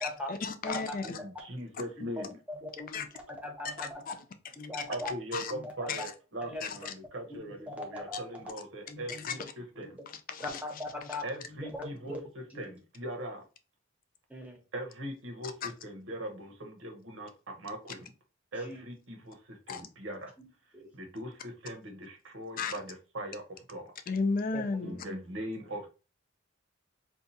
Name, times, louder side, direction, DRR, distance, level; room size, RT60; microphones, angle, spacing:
voice 1, 0.0-1.2 2.9-3.1 3.6-4.2 4.8-4.9 5.3-5.5 5.9-6.0 6.6-6.9 9.1-9.4 10.1-10.6 11.1-11.2 15.6-15.7 19.7-19.8 22.6-22.7 24.1-25.1, left 4 dB, 45° left, 0.4 m, -34 dB
voice 2, 1.0-2.4 4.9-9.4 9.8-10.0 11.2-13.4 14.7-17.3 17.6-18.1 18.5-20.3 20.9-23.4 23.7-23.9 24.8-25.9, right 1 dB, 65° right, 0.9 m, -40 dB
voice 3, 2.5-3.9 4.6-5.1 5.5-5.9 6.4-6.6 7.3-8.4 8.9-9.5 9.8-9.9 10.4-11.2 11.5-12.2 12.5-12.6 14.3-14.6 18.6-18.8 20.4-20.5 20.7-20.9 24.5-24.6, left 1 dB, 5° right, 0.8 m, -40 dB
2.7 x 2.3 x 4.0 m
head